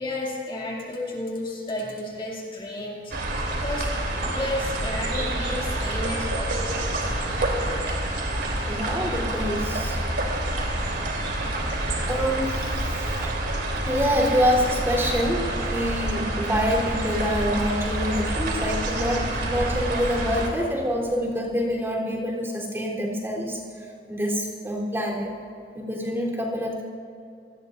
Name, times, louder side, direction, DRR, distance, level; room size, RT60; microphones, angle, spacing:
voice 1, 0.0-7.2, left 1 dB, 30° left, -3 dB, 2.6 m, -33 dB
sound 1, 3.1-20.5, right 1 dB, 70° right, 3.3 m, -27 dB
voice 2, 8.7-10.0 11.8-13.2 13.9-23.6 24.1-25.3 25.7-26.8, equal, 15° right, -3 dB, 3.5 m, -26 dB
28.5 x 19.5 x 2.6 m, 2.5 s
head